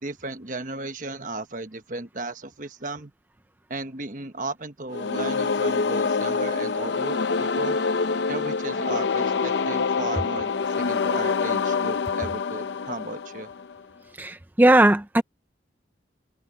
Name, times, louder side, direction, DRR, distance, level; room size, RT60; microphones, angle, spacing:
voice 1, 0.0-3.1 3.7-7.8 8.3-13.5, right 2 dB, 45° right, 1.3 m, -35 dB
sound 1, 4.9-13.8, left 5 dB, 75° left, 0.6 m, -26 dB
voice 2, 14.2-15.2, right 1 dB, 10° right, 0.4 m, -18 dB
head